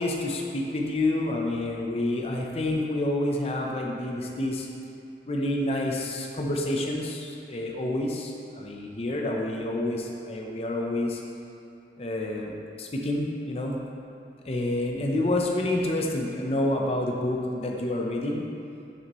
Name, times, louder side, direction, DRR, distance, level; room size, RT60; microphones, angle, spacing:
voice 1, 0.0-4.7 5.3-11.2 12.0-13.8 14.4-18.4, left 1 dB, 35° left, -1 dB, 0.7 m, -28 dB
8.7 x 6.8 x 3.1 m, 2.7 s
head